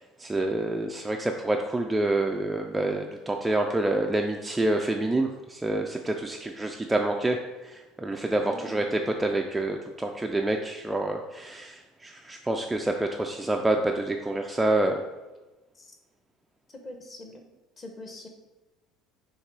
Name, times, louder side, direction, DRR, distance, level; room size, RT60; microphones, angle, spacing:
voice 1, 0.2-7.4 7.6-15.0, right 2 dB, 5° right, 2 dB, 0.3 m, -27 dB
voice 2, 8.5-8.8 15.7-16.0 16.7-17.4 17.8-18.3, left 2 dB, 25° left, 3 dB, 0.8 m, -43 dB
6.5 x 3.3 x 4.6 m, 1.1 s
cardioid pair, 165°, 0 cm